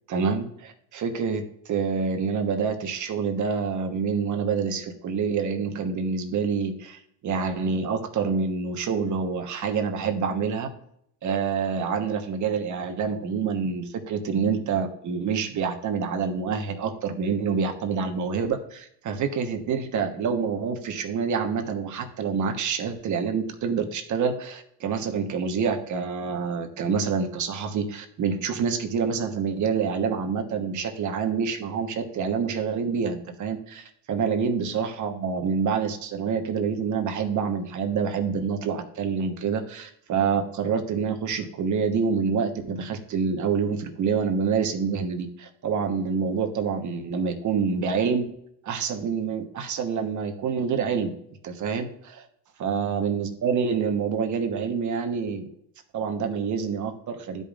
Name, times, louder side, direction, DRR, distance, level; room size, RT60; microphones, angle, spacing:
voice 1, 0.1-10.7 11.2-48.3 48.6-51.2 51.4-52.3 52.6-55.5 55.9-57.4, right 6 dB, 40° right, 5 dB, 1.3 m, -27 dB
12.5 x 5.4 x 2.5 m, 0.72 s
supercardioid pair, 110°, 44 cm